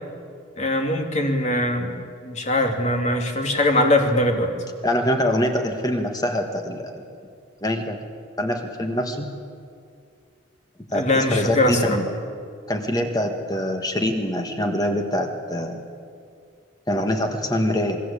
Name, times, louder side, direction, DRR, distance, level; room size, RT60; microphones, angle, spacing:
voice 1, 0.6-1.9 2.2-4.5 10.9-12.0, left 1 dB, 35° left, 3 dB, 2.8 m, -21 dB
voice 2, 4.8-7.0 7.6-8.0 8.4-9.3 10.9-12.0 12.7-15.8 16.9-18.0, left 1 dB, 20° left, 4 dB, 1.6 m, -24 dB
28.0 x 20.5 x 8.6 m, 2.3 s
head